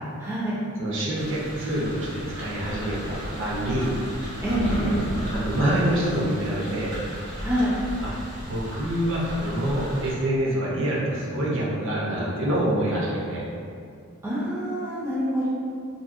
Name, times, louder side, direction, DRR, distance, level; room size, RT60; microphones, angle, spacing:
voice 1, 0.2-0.5 4.4-5.0 7.4-7.7 14.2-15.5, equal, 10° right, -9 dB, 0.4 m, -26 dB
voice 2, 0.8-3.9 5.3-6.9 8.0-8.1 8.4-13.5, right 1 dB, 55° right, -5 dB, 0.6 m, -26 dB
sound 1, 1.1-10.1, equal, 75° right, 1.0 m, -36 dB
sound 2, 4.4-6.0, equal, 75° left, 0.5 m, -32 dB
2.7 x 2.6 x 2.4 m, 2.3 s
head